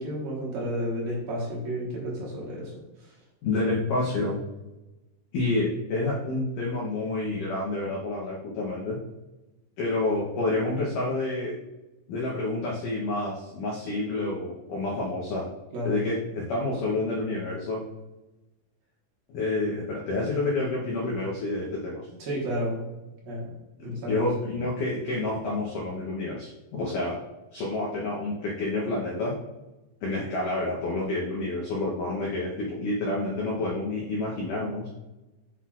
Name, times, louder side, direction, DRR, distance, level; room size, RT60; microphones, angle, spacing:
voice 1, 0.0-2.7 15.7-16.1 22.2-23.5 23.8-24.2, equal, 65° right, -4 dB, 2.8 m, -32 dB
voice 2, 3.4-4.4 5.3-9.0 9.8-11.6 12.1-15.5 15.8-17.8 19.3-22.0 23.8-27.2 27.5-29.4 30.0-34.9, left 2 dB, 80° left, -4 dB, 1.9 m, -29 dB
8.0 x 5.7 x 2.4 m, 1.0 s
omnidirectional pair, 5.1 m